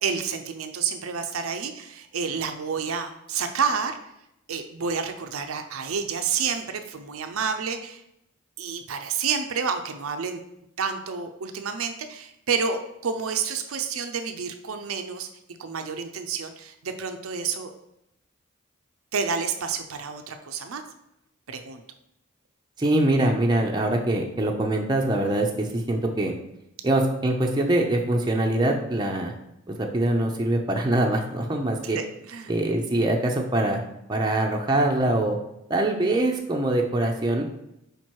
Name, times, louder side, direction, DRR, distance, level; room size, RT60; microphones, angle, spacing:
voice 1, 0.0-4.0 4.5-8.0 8.6-10.4 10.8-15.3 15.6-17.7 19.1-20.8 21.5-21.8 31.9-32.5, right 6 dB, 90° right, 7 dB, 0.6 m, -29 dB
voice 2, 22.8-26.3 26.8-29.3 29.7-32.0 32.5-33.8 34.1-35.4 35.7-37.5, right 1 dB, 20° right, 1 dB, 0.6 m, -23 dB
5.1 x 4.5 x 4.6 m, 0.82 s
head